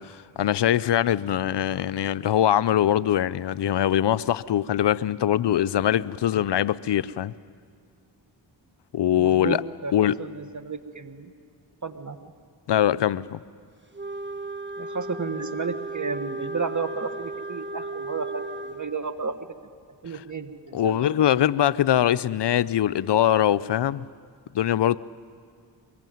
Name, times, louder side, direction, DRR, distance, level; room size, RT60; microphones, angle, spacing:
voice 1, 0.0-7.3 8.9-9.6 9.9-10.2 12.7-13.4 20.1-20.2 20.7-24.0 24.5-25.0, left 11 dB, 65° left, 0.6 m, -22 dB
voice 2, 9.2-9.9 10.2-11.3 11.8-12.3 14.8-19.4 20.0-21.0, right 4 dB, 40° right, 1.7 m, -32 dB
Wind instrument woodwind instrument, 13.9-18.8, right 2 dB, 25° right, 1.6 m, -35 dB
24.0 x 21.5 x 9.3 m
cardioid pair, 55°, 45 cm